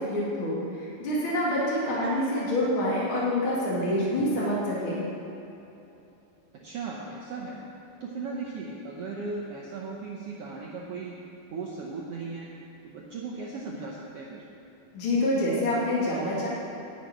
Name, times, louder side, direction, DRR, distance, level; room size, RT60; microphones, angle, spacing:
voice 1, 0.0-5.1 14.9-16.5, left 1 dB, 40° left, -7 dB, 2.6 m, -27 dB
voice 2, 6.5-7.6 8.0-11.2 11.5-12.5 12.8-14.4, right 4 dB, 85° right, -3 dB, 1.3 m, -37 dB
11.5 x 6.2 x 9.0 m, 2.9 s
omnidirectional pair, 4.1 m